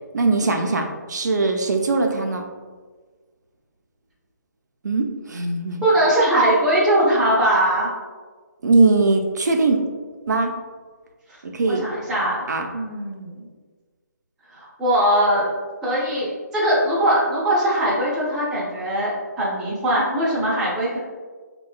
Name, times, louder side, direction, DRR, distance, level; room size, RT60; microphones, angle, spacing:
voice 1, 0.1-2.5 4.8-5.8 8.6-9.8 10.3-10.5 11.4-11.9 12.5-12.7, right 3 dB, 70° right, 3 dB, 0.4 m, -20 dB
voice 2, 5.8-7.9 11.7-12.4 12.7-13.5 14.5-15.5 15.8-19.1 19.4-21.0, right 1 dB, 5° right, -8 dB, 0.4 m, -20 dB
3.0 x 2.2 x 2.4 m, 1.4 s
figure-of-eight pair, 150°, 10 cm